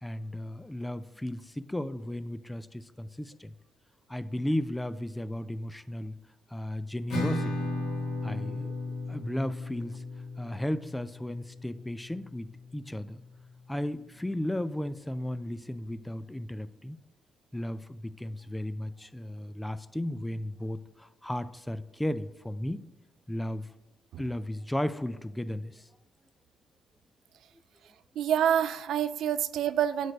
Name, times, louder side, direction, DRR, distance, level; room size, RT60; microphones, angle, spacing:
voice 1, 0.0-3.5 4.1-6.2 6.5-7.6 8.2-8.7 9.1-10.0 10.4-12.5 12.7-13.2 13.7-17.0 17.5-22.8 23.3-23.7 24.2-25.8, left 1 dB, 10° left, 15 dB, 0.3 m, -34 dB
Acoustic guitar / Strum, 7.1-12.5, left 2 dB, 75° left, 2.0 m, -35 dB
voice 2, 28.2-30.1, right 9 dB, 75° right, 14 dB, 0.3 m, -27 dB
9.3 x 3.3 x 5.1 m, 1.1 s
cardioid pair, 90°, 0 cm